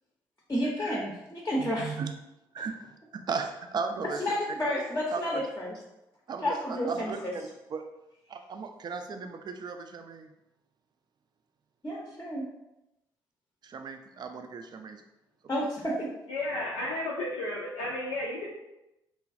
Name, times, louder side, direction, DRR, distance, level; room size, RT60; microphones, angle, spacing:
voice 1, 0.5-1.9 4.2-5.8 6.4-7.3 11.8-12.4 15.5-16.0, equal, 20° left, -2 dB, 0.6 m, -31 dB
voice 2, 1.6-2.1 2.5-4.2 5.1-5.4 6.3-7.2 7.7-7.8 8.3-10.3 13.6-15.0, right 5 dB, 35° right, 6 dB, 0.4 m, -36 dB
voice 3, 16.3-18.5, left 1 dB, 70° left, -5 dB, 0.4 m, -33 dB
3.1 x 2.2 x 2.5 m, 0.92 s
figure-of-eight pair, 40°, 12 cm